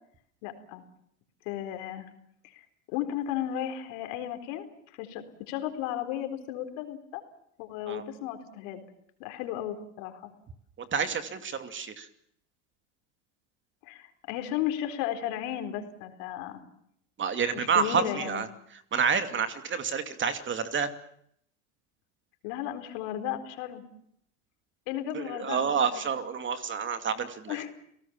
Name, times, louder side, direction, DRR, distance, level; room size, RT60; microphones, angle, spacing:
voice 1, 0.4-0.8 1.4-2.1 2.4-4.7 5.0-7.2 7.6-8.8 9.2-10.3 13.8-16.6 17.5-18.4 22.4-23.8 24.9-26.1 27.5-27.7, left 11 dB, 65° left, 8 dB, 4.2 m, -34 dB
voice 2, 10.8-12.1 17.2-18.5 18.9-20.9 25.1-27.6, right 6 dB, 30° right, 9 dB, 2.6 m, -29 dB
29.5 x 18.0 x 7.4 m, 0.71 s
hypercardioid pair, 100°, 39 cm